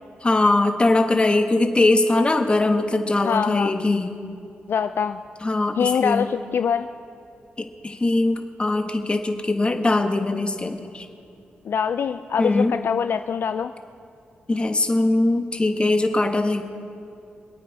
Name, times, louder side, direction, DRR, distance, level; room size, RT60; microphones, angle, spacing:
voice 1, 0.2-4.1 5.4-6.3 7.6-11.1 12.4-12.7 14.5-16.6, left 2 dB, 25° left, 6 dB, 1.3 m, -21 dB
voice 2, 3.2-3.7 4.7-5.2 5.8-6.9 11.7-13.7, left 7 dB, 65° left, 9 dB, 0.4 m, -24 dB
25.5 x 9.1 x 4.7 m, 2.6 s
cardioid pair, 85°, 4 cm